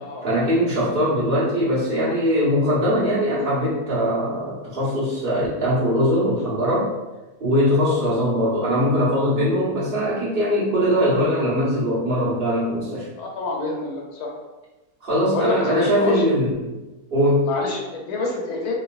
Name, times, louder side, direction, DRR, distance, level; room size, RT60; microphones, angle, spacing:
voice 1, 0.2-6.9 7.4-13.1 15.0-16.8 17.1-17.5, equal, 40° right, -8 dB, 1.1 m, -21 dB
voice 2, 13.2-14.3 15.3-16.2 17.4-18.7, left 3 dB, 80° left, -1 dB, 1.2 m, -27 dB
3.1 x 2.8 x 2.4 m, 1.1 s
omnidirectional pair, 1.7 m